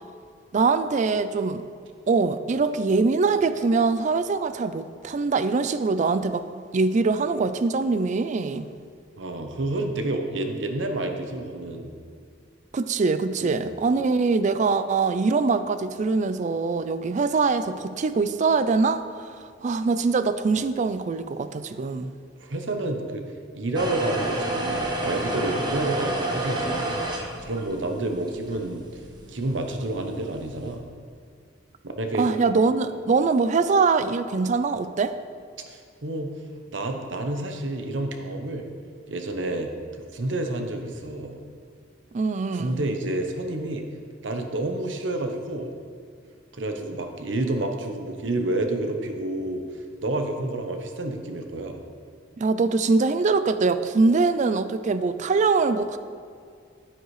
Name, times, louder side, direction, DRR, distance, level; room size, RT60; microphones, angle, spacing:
voice 1, 0.5-1.6 2.1-6.4 6.7-8.7 12.7-19.0 19.6-22.1 32.2-35.2 42.1-42.8 52.4-56.0, right 4 dB, 40° right, 12 dB, 0.4 m, -23 dB
voice 2, 9.2-11.9 13.4-13.7 22.4-23.2 23.5-28.9 29.3-30.8 31.8-32.3 35.7-36.3 36.7-38.7 39.1-39.7 40.1-41.4 42.5-43.8 44.2-45.7 46.5-51.8, right 2 dB, 80° right, 5 dB, 0.9 m, -29 dB
sound 1, 23.7-30.8, right 1 dB, 25° right, 1.0 m, -30 dB
9.4 x 9.1 x 3.2 m, 2.2 s
head